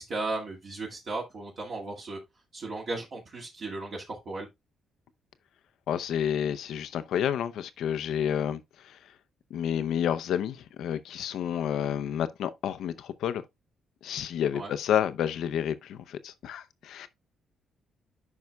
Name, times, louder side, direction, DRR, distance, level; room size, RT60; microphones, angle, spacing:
voice 1, 0.0-2.2 2.5-4.5 14.5-14.7, right 2 dB, 50° right, 2.0 m, -35 dB
voice 2, 5.9-9.0 9.5-13.4 14.0-17.1, left 9 dB, 75° left, 0.6 m, -30 dB
9.5 x 5.4 x 2.3 m
cardioid pair, 90°, 0 cm